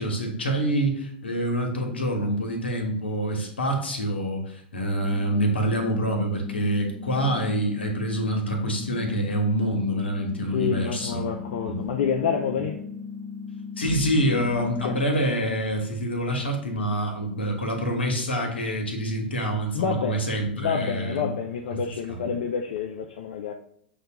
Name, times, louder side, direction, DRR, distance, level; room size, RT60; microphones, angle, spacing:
voice 1, 0.0-11.3 11.7-11.8 13.8-21.2 22.1-22.3, right 1 dB, 80° left, 1.0 m, -26 dB
sound 1, 5.0-15.0, left 5 dB, 35° left, 0.8 m, -37 dB
voice 2, 10.5-12.8 14.6-15.0 19.7-20.3 20.5-23.5, left 7 dB, 60° left, 0.4 m, -28 dB
6.5 x 2.3 x 2.9 m
figure-of-eight pair, 100°, 6 cm